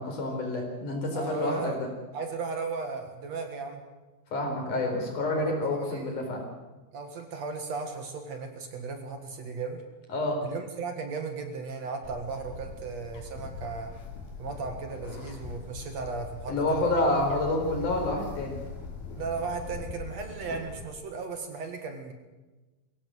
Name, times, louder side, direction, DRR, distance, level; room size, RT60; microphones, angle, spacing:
voice 1, 0.0-1.9 4.3-6.4 10.1-10.4 16.5-18.6, left 2 dB, 65° left, 2 dB, 5.7 m, -28 dB
voice 2, 1.1-1.8 2.1-3.8 5.3-6.3 6.9-9.8 10.4-13.9 14.4-17.0 19.1-22.1, right 4 dB, 55° right, 5 dB, 2.8 m, -36 dB
Bird, 12.0-20.9, left 4 dB, 85° left, 4.5 m, -41 dB
22.5 x 16.5 x 7.8 m, 1.2 s
omnidirectional pair, 4.0 m